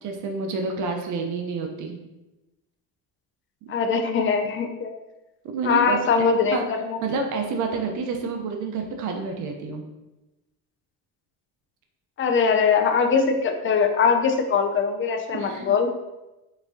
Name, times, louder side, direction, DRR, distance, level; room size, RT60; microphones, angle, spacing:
voice 1, 0.0-2.0 5.4-6.0 6.5-6.6 7.0-9.8 15.3-15.8, right 4 dB, 55° right, 3 dB, 0.7 m, -29 dB
voice 2, 3.7-4.9 5.6-6.6 6.9-7.0 12.2-15.9, left 5 dB, 35° left, 4 dB, 0.5 m, -21 dB
4.0 x 3.5 x 2.7 m, 1.0 s
cardioid pair, 115°, 37 cm